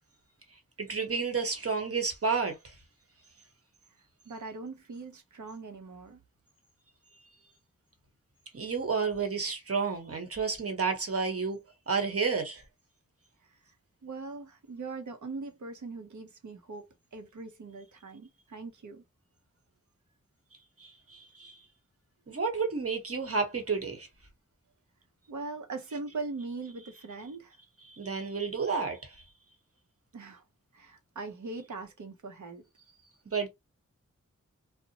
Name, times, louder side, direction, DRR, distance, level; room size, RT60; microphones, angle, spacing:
voice 1, 0.8-2.7 8.5-11.6 11.9-12.6 20.8-21.6 22.3-24.1 27.9-29.1 33.3-33.5, right 5 dB, 50° right, 1.1 m, -31 dB
voice 2, 4.3-6.2 14.0-19.0 25.3-27.6 30.1-30.4 30.7-32.7, right 3 dB, 75° right, 0.7 m, -41 dB
2.7 x 2.1 x 2.7 m
wide cardioid pair, 60°, 30 cm